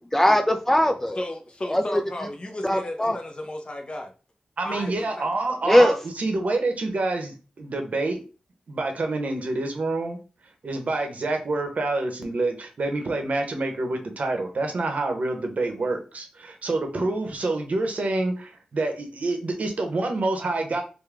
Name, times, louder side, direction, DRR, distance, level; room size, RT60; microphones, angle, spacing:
voice 1, 0.1-1.2 1.7-2.0 2.6-3.2 5.7-5.9, left 1 dB, 10° left, 0.3 m, -20 dB
voice 2, 1.2-4.1 4.6-5.3, left 1 dB, 40° left, 0.7 m, -34 dB
voice 3, 4.6-8.2 8.7-10.2 10.6-20.8, right 2 dB, 65° right, 0.9 m, -27 dB
3.6 x 2.2 x 3.4 m
wide cardioid pair, 70°, 3 cm